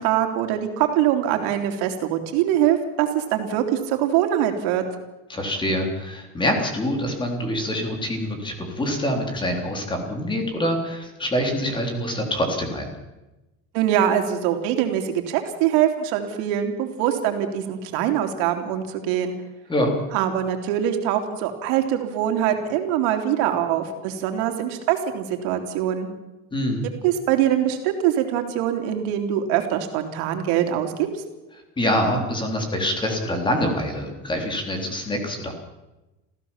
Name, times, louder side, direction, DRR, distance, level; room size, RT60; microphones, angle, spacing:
voice 1, 0.0-4.8 13.7-19.3 20.1-26.1 27.0-31.2, right 10 dB, 80° right, 5 dB, 3.2 m, -23 dB
voice 2, 5.3-12.9 19.7-19.9 26.5-26.9 31.8-35.6, equal, 15° left, 3 dB, 3.8 m, -25 dB
27.0 x 15.5 x 7.3 m, 1.0 s
cardioid pair, 160°, 32 cm